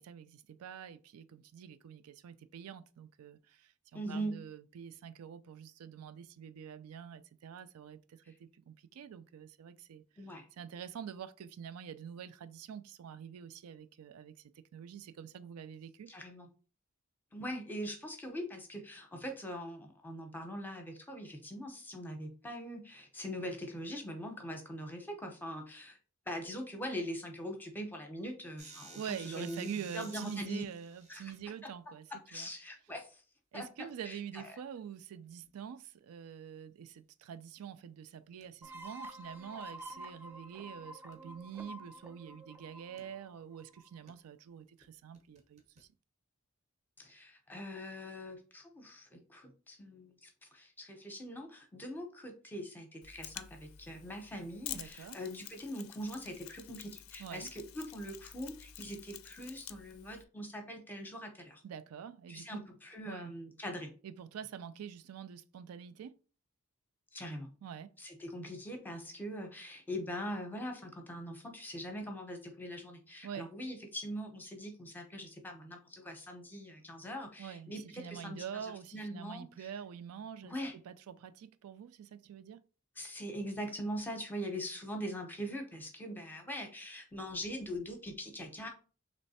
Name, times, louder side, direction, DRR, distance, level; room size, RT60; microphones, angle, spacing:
voice 1, 0.0-10.3 10.6-16.1 28.9-32.5 33.5-45.9 54.7-55.2 57.2-57.5 61.6-62.6 63.0-63.3 64.0-66.2 67.6-67.9 73.2-73.5 77.4-80.6 80.9-82.6, right 8 dB, 90° right, 0.3 m, -46 dB
voice 2, 3.9-4.4 10.2-10.5 16.1-16.5 17.3-26.0 26.3-30.6 31.1-31.3 32.3-33.2 33.5-34.4 47.0-61.6 62.3-63.9 67.1-67.5 68.0-79.7 80.4-80.7 83.0-88.7, equal, 10° left, 0.7 m, -42 dB
sound 1, 28.6-31.4 35.4-35.6 38.4-38.6 39.9-40.0 40.4-40.5 41.1-42.1 43.0-43.6 44.1-44.2 44.8-44.9 45.1-45.8, right 4 dB, 30° right, 0.7 m, -56 dB
sound 2, 38.6-44.1, right 1 dB, 10° right, 0.3 m, -49 dB
Mechanisms, 53.0-60.2, left 12 dB, 75° left, 0.4 m, -49 dB
3.2 x 3.1 x 4.1 m
head